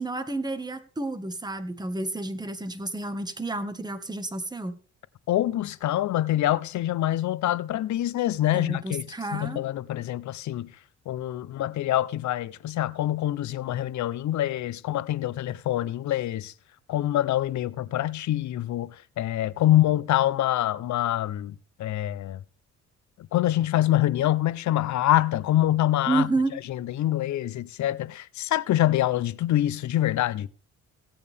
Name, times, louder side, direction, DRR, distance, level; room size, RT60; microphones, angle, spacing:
voice 1, 0.0-4.8 8.5-9.6 26.1-26.6, right 2 dB, 15° right, 1.5 m, -30 dB
voice 2, 5.3-9.0 9.3-10.7 11.1-16.5 16.9-22.4 23.3-26.3 26.7-30.5, left 13 dB, 70° left, 0.7 m, -25 dB
17.0 x 8.8 x 3.5 m
cardioid pair, 90°, 30 cm